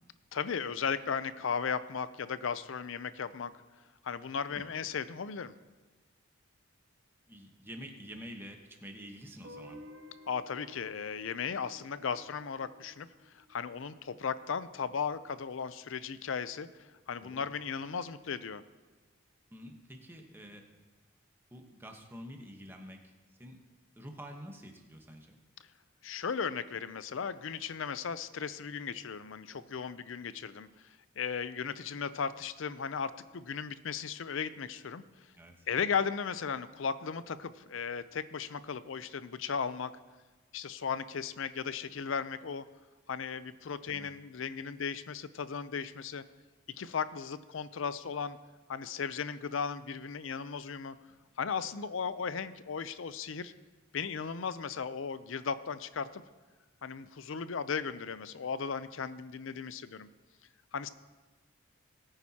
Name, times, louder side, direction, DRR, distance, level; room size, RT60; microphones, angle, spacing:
voice 1, 0.3-3.5 4.0-5.5 10.3-13.1 13.3-18.6 26.0-30.7 31.2-35.0 35.7-39.9 40.5-42.6 43.1-46.2 46.8-48.4 48.7-51.0 51.4-53.5 53.9-56.2 56.8-60.1 60.7-60.9, left 6 dB, 70° left, 14 dB, 0.5 m, -36 dB
voice 2, 7.3-9.8 17.2-17.5 19.5-20.6 21.5-23.0 23.4-23.6 24.0-25.4 35.4-35.7 43.9-44.1, equal, 10° right, 3 dB, 1.1 m, -48 dB
Guitar, 9.4-14.3, left 1 dB, 80° right, 1.3 m, -54 dB
20.0 x 8.9 x 2.9 m, 1.3 s
head